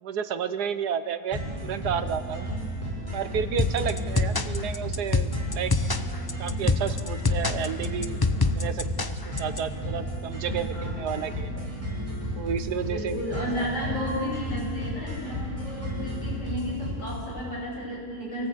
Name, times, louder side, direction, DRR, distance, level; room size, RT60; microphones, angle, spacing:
voice 1, 0.0-2.5 3.1-5.7 6.4-8.2 8.5-11.7 12.4-13.7, right 8 dB, 85° right, 11 dB, 1.5 m, -31 dB
sound 1, 1.3-17.3, equal, 20° right, 6.8 m, -33 dB
sound 2, 3.6-9.6, left 3 dB, 30° left, 0.4 m, -26 dB
voice 2, 10.4-11.2 12.8-18.5, left 1 dB, 50° left, -4 dB, 8.3 m, -33 dB
28.5 x 18.5 x 8.3 m, 2.3 s
omnidirectional pair, 1.7 m